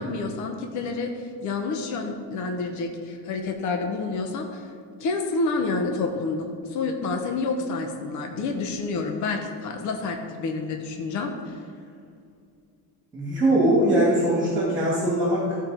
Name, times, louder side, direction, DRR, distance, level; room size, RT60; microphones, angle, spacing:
voice 1, 0.0-4.7 5.0-11.6, left 3 dB, 45° left, 4 dB, 0.8 m, -29 dB
voice 2, 13.1-15.6, right 1 dB, 10° right, -6 dB, 2.0 m, -21 dB
13.5 x 4.7 x 5.0 m, 2.4 s
cardioid pair, 175°, 43 cm